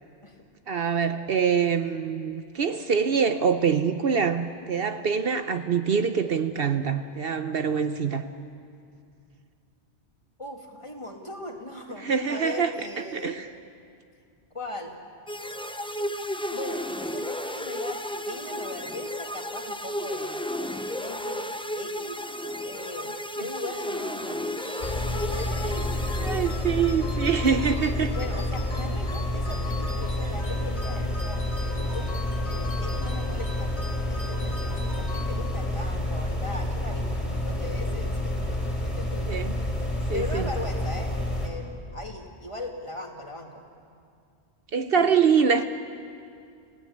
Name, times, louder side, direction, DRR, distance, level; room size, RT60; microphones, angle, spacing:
voice 1, 0.7-8.3 12.0-12.7 13.1-13.5 23.4-23.5 26.2-28.1 39.3-39.5 40.1-40.4 44.7-45.6, right 6 dB, 60° right, 9 dB, 1.0 m, -24 dB
voice 2, 10.4-13.5 14.5-15.0 16.5-20.4 20.9-21.5 21.8-22.2 22.6-23.1 23.4-25.9 28.1-32.1 32.4-33.7 34.1-38.3 38.8-39.3 40.1-43.6 45.0-45.2, left 2 dB, 25° left, 1 dB, 2.3 m, -39 dB
sound 1, 15.3-27.1, left 1 dB, 5° left, 0.5 m, -33 dB
sound 2, 24.6-35.8, left 3 dB, 70° left, 1.8 m, -42 dB
sound 3, 24.8-41.5, left 1 dB, 40° left, 3.2 m, -29 dB
28.5 x 16.5 x 8.6 m, 2.4 s
omnidirectional pair, 1.2 m